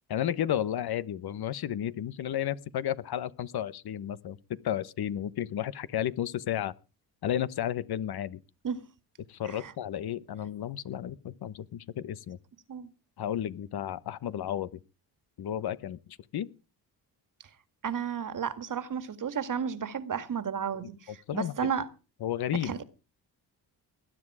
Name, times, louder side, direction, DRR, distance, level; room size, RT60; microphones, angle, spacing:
voice 1, 0.1-4.4 4.6-6.7 7.2-8.4 9.3-12.4 13.2-14.8 15.4-16.0 16.3-16.5 20.8-20.9 21.3-21.7 22.2-22.8, left 10 dB, 65° left, 1.1 m, -32 dB
voice 2, 17.8-21.9 22.6-22.8, right 7 dB, 50° right, 1.9 m, -33 dB
20.0 x 10.0 x 4.9 m
cardioid pair, 80°, 41 cm